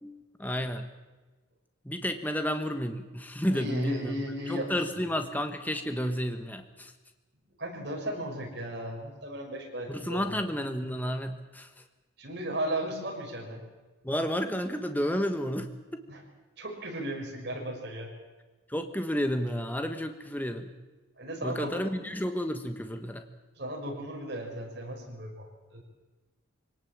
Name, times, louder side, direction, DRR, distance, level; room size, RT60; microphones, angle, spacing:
voice 1, 0.0-0.9 1.8-4.2 4.5-6.9 9.9-11.7 14.0-16.0 18.7-20.7 21.4-23.2, equal, 10° left, 7 dB, 1.2 m, -31 dB
voice 2, 3.5-4.7 7.6-10.4 12.2-13.6 16.1-16.2 16.6-18.1 21.2-21.9 23.6-25.8, right 1 dB, 55° right, 0 dB, 5.9 m, -36 dB
24.5 x 18.0 x 7.5 m, 1.2 s
head